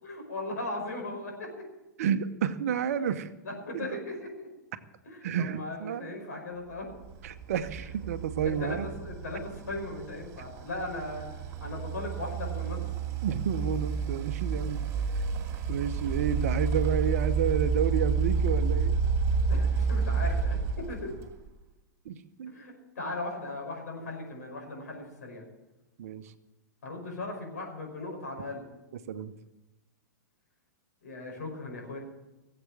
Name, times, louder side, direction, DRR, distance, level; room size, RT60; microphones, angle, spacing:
voice 1, 0.0-1.7 3.4-4.5 5.1-6.9 8.6-11.2 11.6-12.8 19.4-21.1 22.5-25.4 26.8-28.6 31.0-32.0, left 2 dB, 65° left, 1 dB, 5.4 m, -38 dB
voice 2, 2.0-3.3 3.7-4.0 5.2-6.3 7.2-8.9 13.2-14.8 15.7-19.0 22.0-22.6 26.0-26.3 29.1-29.3, right 8 dB, 55° right, 11 dB, 0.9 m, -30 dB
sound 1, 7.0-21.5, right 5 dB, 30° right, 2.4 m, -30 dB
18.0 x 7.8 x 7.7 m, 1.0 s
figure-of-eight pair, 100°, 10 cm